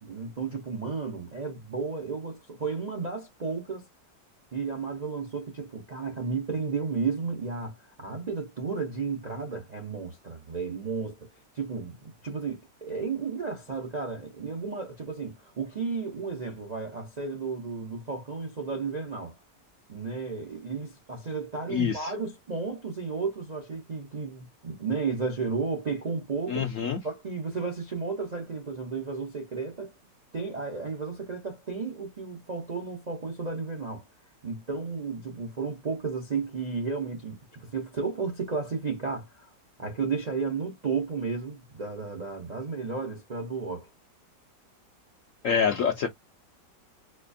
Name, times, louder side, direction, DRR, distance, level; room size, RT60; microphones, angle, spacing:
voice 1, 0.0-3.8 4.5-11.3 11.5-12.0 12.2-19.3 19.9-26.6 27.0-29.9 30.3-34.0 34.4-39.5 39.8-43.9, right 4 dB, 50° right, 0.4 m, -33 dB
voice 2, 21.7-22.1 26.5-27.0 45.4-46.1, left 7 dB, 70° left, 0.7 m, -26 dB
4.2 x 2.4 x 2.6 m
omnidirectional pair, 1.9 m